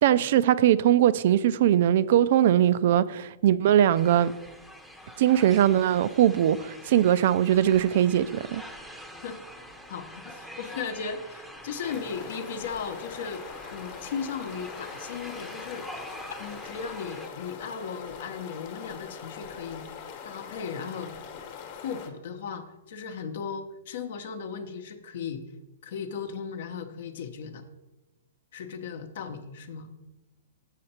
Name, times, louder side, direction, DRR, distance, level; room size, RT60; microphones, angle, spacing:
voice 1, 0.0-4.3 5.2-8.6, right 11 dB, 55° right, 0.3 m, -21 dB
sound 1, 3.9-17.3, equal, ahead, 0.7 m, -45 dB
voice 2, 9.9-13.4 13.7-16.0 16.3-19.9 20.2-21.1 21.8-25.4 25.8-27.6 28.5-29.9, left 6 dB, 60° left, 0.8 m, -36 dB
sound 2, 11.8-22.1, left 7 dB, 40° left, 1.1 m, -43 dB
6.6 x 6.5 x 4.3 m
hypercardioid pair, 145°, 0 cm